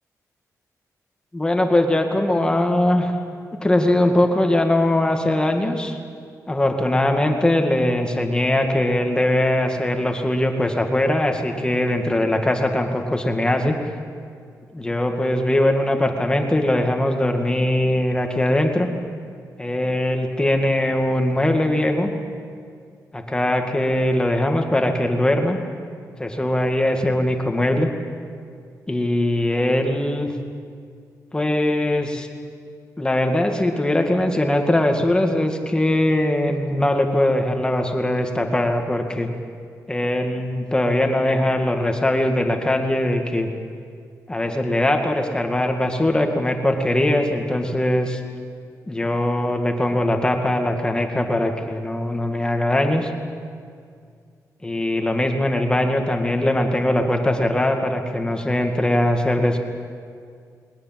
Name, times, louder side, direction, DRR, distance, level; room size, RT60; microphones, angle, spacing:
voice 1, 1.3-3.1 3.6-6.0 6.5-13.8 14.7-18.9 19.6-22.1 23.1-25.6 26.2-27.9 28.9-30.3 31.3-32.3 33.0-39.3 39.9-43.5 44.3-48.2 48.9-53.1 54.6-59.6, left 1 dB, 15° left, 3 dB, 2.1 m, -21 dB
20.5 x 20.5 x 7.7 m, 2.2 s
wide cardioid pair, 125°, 6 cm